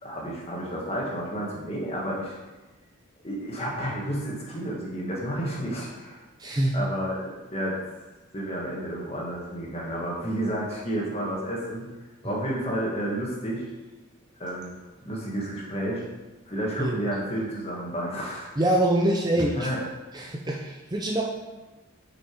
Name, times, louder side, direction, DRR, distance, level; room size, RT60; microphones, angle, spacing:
voice 1, 0.0-2.4 3.2-6.2 6.7-7.8 8.3-11.8 12.2-13.7 14.4-14.7 15.0-16.0 16.5-18.5 19.6-19.8, right 1 dB, 30° left, -4 dB, 1.8 m, -31 dB
voice 2, 6.4-6.8 16.8-17.0 18.6-19.7 20.1-21.2, right 1 dB, 20° right, -1 dB, 0.5 m, -24 dB
6.2 x 6.1 x 4.7 m, 1.2 s
head